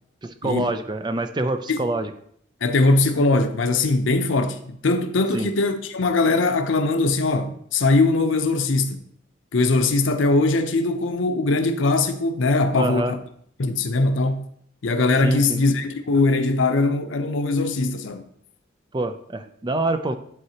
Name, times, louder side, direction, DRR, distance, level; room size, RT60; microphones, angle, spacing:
voice 1, 0.2-2.1 5.3-5.5 12.7-13.1 15.2-15.6 18.9-20.2, right 2 dB, 25° right, 0.4 m, -26 dB
voice 2, 2.6-9.0 9.5-13.2 13.6-14.4 14.8-18.2, left 3 dB, 90° left, 0.6 m, -21 dB
11.0 x 4.1 x 2.8 m
head